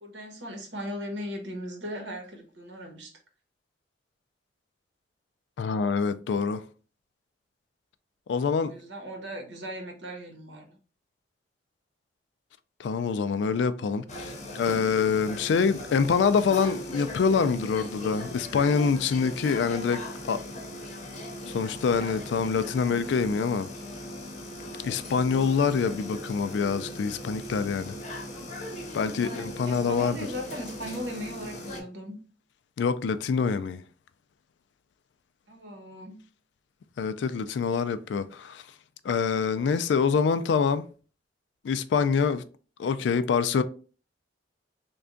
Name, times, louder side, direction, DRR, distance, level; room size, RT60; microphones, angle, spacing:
voice 1, 0.0-3.2 8.6-10.8 29.2-32.2 35.5-36.2, equal, 75° right, 1.0 m, -38 dB
voice 2, 5.6-6.6 8.3-8.7 12.8-20.4 21.5-23.7 24.8-28.0 28.9-30.2 32.8-33.8 37.0-38.6 39.0-40.8 41.6-42.4 42.8-43.6, left 5 dB, 70° left, 0.3 m, -25 dB
sound 1, 14.1-31.8, left 1 dB, 40° left, 0.8 m, -39 dB
3.4 x 2.2 x 3.7 m
head